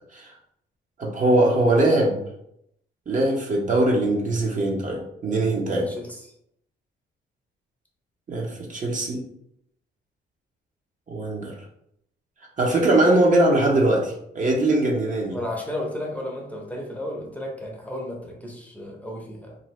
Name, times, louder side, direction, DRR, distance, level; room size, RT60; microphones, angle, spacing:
voice 1, 1.0-2.2 3.1-5.9 8.3-9.2 11.1-11.5 12.6-15.4, right 2 dB, 40° right, -1 dB, 0.8 m, -21 dB
voice 2, 5.7-6.3 15.3-19.6, left 1 dB, 5° left, -1 dB, 0.7 m, -33 dB
2.6 x 2.6 x 3.1 m, 0.75 s
cardioid pair, 90°, 20 cm